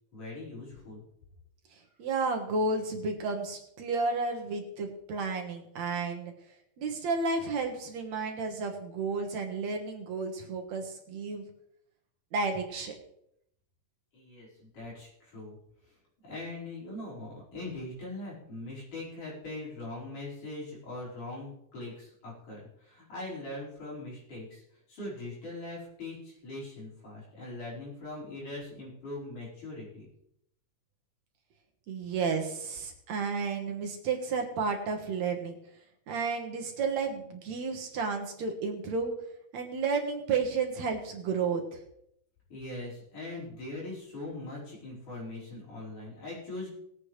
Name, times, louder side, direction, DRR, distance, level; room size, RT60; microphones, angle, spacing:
voice 1, 0.1-1.0 14.1-15.6 15.8-15.9 16.2-30.1 42.5-46.7, left 2 dB, 75° left, -6 dB, 6.4 m, -41 dB
voice 2, 2.0-6.3 6.8-11.5 12.3-12.9 31.9-35.6 36.1-39.1 39.5-41.6, right 4 dB, 65° right, 3 dB, 2.5 m, -32 dB
20.5 x 8.5 x 3.3 m, 0.74 s
omnidirectional pair, 3.6 m